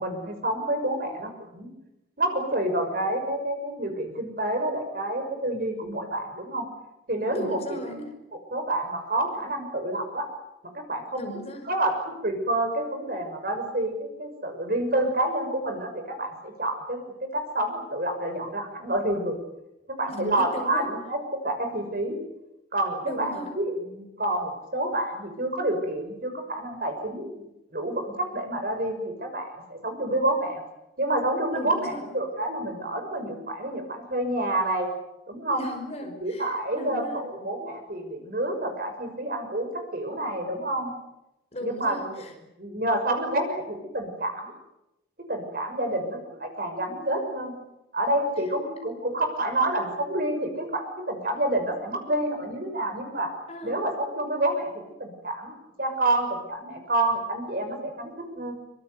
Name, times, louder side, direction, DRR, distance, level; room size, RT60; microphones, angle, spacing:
voice 1, 0.0-1.7 2.2-6.7 7.1-7.6 7.9-8.0 8.3-10.3 10.7-11.2 11.6-19.4 20.0-22.2 22.7-27.4 27.7-30.6 31.0-34.9 35.3-35.6 36.0-40.9 41.6-42.2 42.6-44.5 45.3-47.5 47.9-53.3 53.6-54.7 55.0-58.5, right 1 dB, 50° right, 6 dB, 6.3 m, -28 dB
voice 2, 7.3-8.1 11.2-11.7 20.1-20.9 23.0-23.5 31.5-32.1 35.5-37.2 41.5-42.3 53.5-53.8, left 1 dB, 35° left, 4 dB, 5.4 m, -37 dB
26.0 x 25.0 x 8.1 m, 0.92 s
head